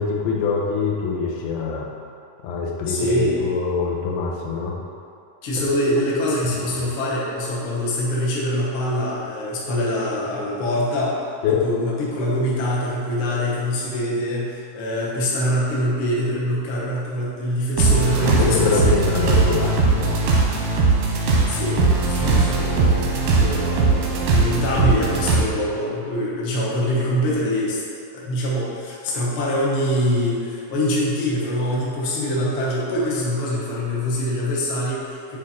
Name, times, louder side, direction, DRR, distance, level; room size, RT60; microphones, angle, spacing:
voice 1, 0.0-1.9 2.4-4.8 6.6-6.8 11.4-11.6 18.4-20.2, left 5 dB, 85° left, -2 dB, 2.6 m, -24 dB
voice 2, 2.8-3.5 5.4-11.2 11.5-19.0 21.0-24.0 24.3-27.8 28.1-35.4, equal, 65° left, -6 dB, 1.3 m, -24 dB
sound 1, 17.8-25.4, right 3 dB, 90° right, 2.6 m, -19 dB
8.5 x 3.2 x 4.2 m, 2.5 s
omnidirectional pair, 4.1 m